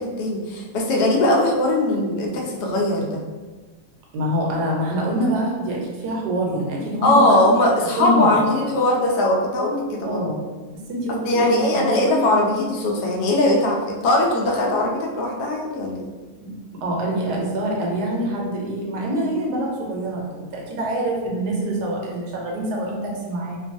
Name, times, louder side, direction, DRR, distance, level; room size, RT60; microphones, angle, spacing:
voice 1, 0.0-3.2 7.0-10.2 11.2-16.1, left 1 dB, 85° left, -1 dB, 1.2 m, -20 dB
voice 2, 4.1-7.4 8.0-8.5 10.0-10.4 10.9-12.3 16.4-16.5 16.8-23.6, right 1 dB, 85° right, -2 dB, 1.3 m, -25 dB
3.0 x 2.2 x 2.5 m, 1.3 s
omnidirectional pair, 1.7 m